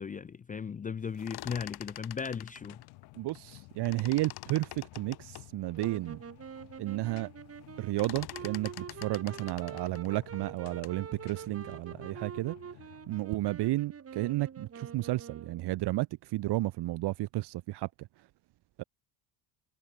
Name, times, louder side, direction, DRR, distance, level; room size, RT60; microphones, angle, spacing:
voice 1, 0.0-2.8, left 6 dB, 20° left, 0.5 m, -37 dB
sound 1, 1.0-3.6 3.8-6.0 6.5-6.6 6.8-7.3 7.5-11.1, left 14 dB, 55° left, 2.7 m, -46 dB
sound 2, 2.5-13.3, left 26 dB, 85° left, 6.6 m, -54 dB
voice 2, 3.2-6.2 6.8-7.3 7.8-12.5 13.1-18.1 18.8-18.9, right 17 dB, 60° right, 1.6 m, -32 dB
sound 3, 5.7-15.7, right 7 dB, 30° right, 5.2 m, -46 dB
cardioid pair, 130°, 45 cm